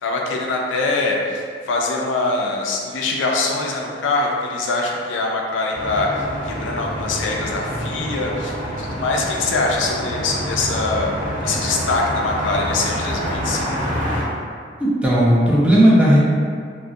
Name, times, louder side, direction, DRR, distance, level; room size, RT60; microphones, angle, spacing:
voice 1, 0.0-11.1 11.4-13.7, left 3 dB, 90° left, -1 dB, 0.4 m, -23 dB
sound 1, 5.7-14.2, equal, 45° left, 0.7 m, -27 dB
voice 2, 14.8-16.2, equal, 5° right, -7 dB, 0.4 m, -14 dB
2.3 x 2.1 x 2.5 m, 2.1 s
head